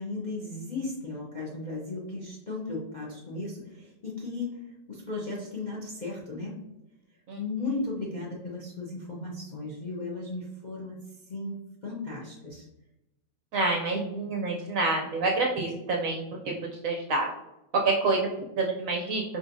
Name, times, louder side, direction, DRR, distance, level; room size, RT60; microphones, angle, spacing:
voice 1, 0.0-6.6 7.4-11.6 11.8-12.7, left 3 dB, 45° left, -4 dB, 0.5 m, -36 dB
voice 2, 13.5-17.3 17.7-18.3 18.6-19.2, right 3 dB, 65° right, 0 dB, 0.8 m, -27 dB
5.1 x 3.1 x 2.6 m, 0.92 s
omnidirectional pair, 1.9 m